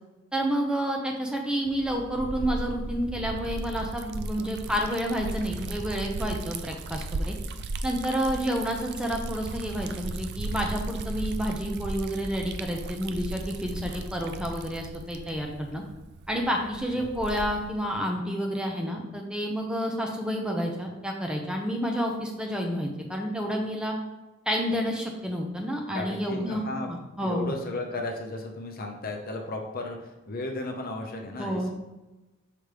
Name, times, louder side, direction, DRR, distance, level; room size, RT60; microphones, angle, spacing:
voice 1, 0.3-7.3 7.8-15.8 16.3-23.9 24.5-26.6 26.9-27.5 31.4-31.7, equal, 5° right, 1 dB, 0.6 m, -29 dB
Liquid, 1.7-17.8, right 2 dB, 55° right, 0.4 m, -36 dB
voice 2, 25.9-26.9 27.2-31.7, left 2 dB, 45° left, 2 dB, 0.8 m, -34 dB
5.9 x 5.0 x 3.4 m, 1.1 s
head